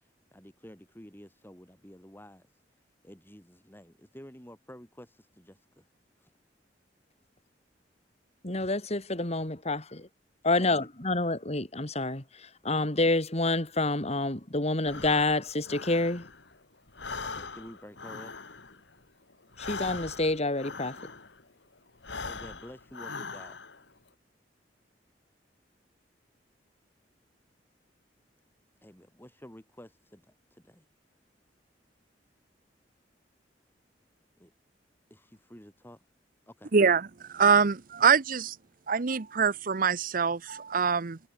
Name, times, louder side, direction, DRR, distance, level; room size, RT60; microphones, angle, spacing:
voice 1, 0.3-2.5 3.0-5.9 6.2-6.3 10.6-10.9 17.2-18.6 22.2-23.6 28.8-30.9 34.4-34.5 35.1-36.0 36.5-36.7, equal, 10° left, 7.3 m, -50 dB
voice 2, 8.4-10.1 10.4-16.3 19.6-21.0, left 2 dB, 40° left, 3.2 m, -28 dB
Breathing, 14.8-16.6 16.9-21.5 22.0-23.9, left 4 dB, 85° left, 3.7 m, -41 dB
voice 3, 36.7-38.6 38.9-41.2, right 6 dB, 50° right, 0.8 m, -24 dB
head